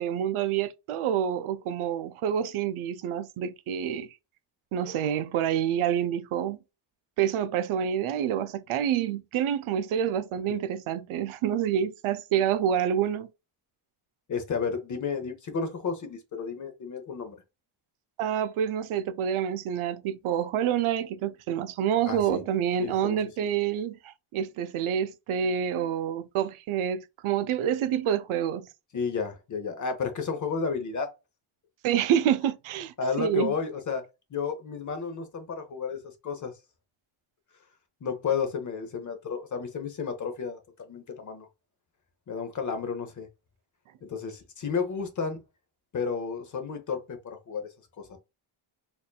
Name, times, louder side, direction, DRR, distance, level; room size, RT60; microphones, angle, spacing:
voice 1, 0.0-4.1 4.7-6.6 7.2-13.3 18.2-28.7 31.8-33.5, right 9 dB, 80° right, 0.6 m, -27 dB
voice 2, 14.3-17.4 22.0-22.4 22.8-23.5 28.9-31.1 33.0-34.0 34.3-36.5 38.0-41.5 42.3-43.3 44.0-45.4 45.9-47.7 48.0-48.2, left 5 dB, 40° left, 0.7 m, -32 dB
4.1 x 2.6 x 2.3 m
wide cardioid pair, 165°, 49 cm